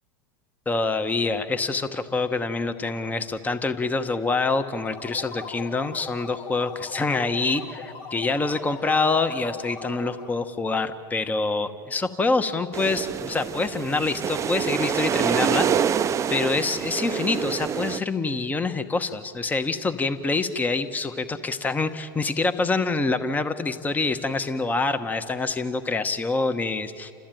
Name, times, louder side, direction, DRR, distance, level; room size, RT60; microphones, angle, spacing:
voice 1, 0.7-16.0 16.3-27.1, left 3 dB, 15° left, 10 dB, 1.0 m, -26 dB
sound 1, 4.7-10.4, left 5 dB, 65° left, 2.7 m, -40 dB
sound 2, 12.7-18.0, right 8 dB, 25° right, 0.5 m, -26 dB
29.0 x 14.0 x 9.0 m, 2.5 s
hypercardioid pair, 105°, 11 cm